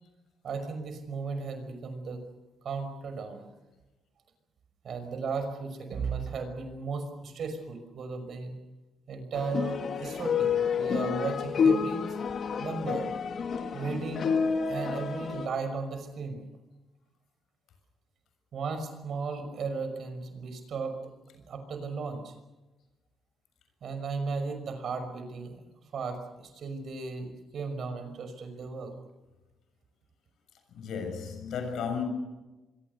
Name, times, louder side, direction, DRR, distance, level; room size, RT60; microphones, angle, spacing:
voice 1, 0.4-2.2 2.6-3.4 4.8-8.5 9.1-12.2 12.6-13.1 13.7-14.3 14.7-16.4 18.5-21.0 21.5-22.3 23.8-28.9, right 4 dB, 60° right, 5.6 m, -35 dB
sound 1, 9.3-15.5, left 6 dB, 55° left, 2.3 m, -29 dB
voice 2, 30.7-32.0, left 6 dB, 75° left, 7.1 m, -34 dB
25.5 x 23.5 x 6.8 m
cardioid pair, 90°, 0 cm